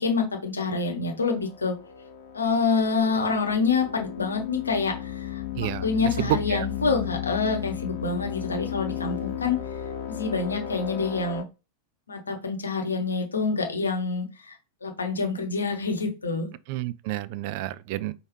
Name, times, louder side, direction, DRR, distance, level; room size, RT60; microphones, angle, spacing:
voice 1, 0.0-1.8 2.3-5.4 5.8-9.6 10.2-11.4 12.1-16.5, left 4 dB, 75° left, 1.0 m, -27 dB
sound 1, 1.4-11.4, left 10 dB, 50° left, 0.6 m, -35 dB
voice 2, 6.3-6.7 16.7-18.2, right 14 dB, 45° right, 0.3 m, -29 dB
4.7 x 2.3 x 3.2 m
figure-of-eight pair, 90°, 0 cm